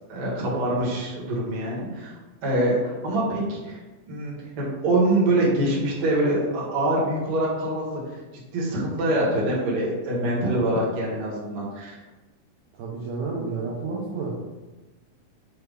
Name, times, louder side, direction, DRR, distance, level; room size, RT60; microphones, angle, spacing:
voice 1, 0.1-2.1 2.4-3.8 4.1-8.2 8.5-12.0, right 1 dB, 60° right, -5 dB, 1.6 m, -24 dB
voice 2, 12.7-14.4, right 4 dB, 85° right, -4 dB, 1.8 m, -30 dB
5.6 x 2.3 x 3.3 m, 1.2 s
omnidirectional pair, 4.1 m